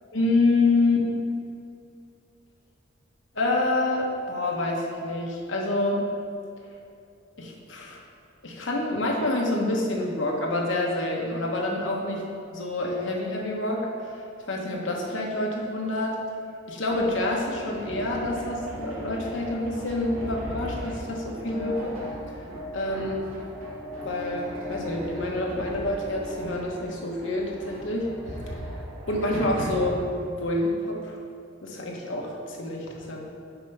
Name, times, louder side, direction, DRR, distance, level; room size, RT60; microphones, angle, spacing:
voice 1, 0.1-1.1 3.3-6.1 7.4-8.0 8.4-12.2 12.5-13.9 14.5-16.2 16.7-21.9 22.7-23.2 24.0-28.1 29.1-30.0 30.3-31.1 31.6-33.2, left 2 dB, 65° left, -1 dB, 1.1 m, -27 dB
sound 1, 16.9-30.0, equal, 80° right, 1.4 m, -37 dB
6.0 x 4.5 x 5.4 m, 2.6 s
head